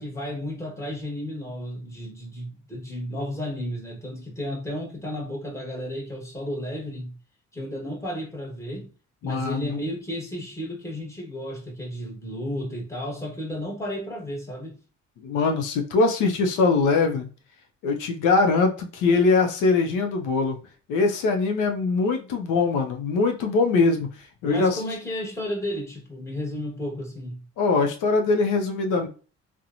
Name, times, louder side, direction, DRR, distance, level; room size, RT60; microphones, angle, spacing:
voice 1, 0.0-7.1 7.5-8.9 9.2-14.8 24.4-27.4, left 1 dB, 10° left, 1.1 m, -33 dB
voice 2, 9.2-9.8 15.2-17.3 17.8-20.6 20.9-24.1 24.4-24.8 27.6-29.1, left 4 dB, 85° left, 0.5 m, -22 dB
2.8 x 2.1 x 2.4 m
cardioid pair, 90°, 30 cm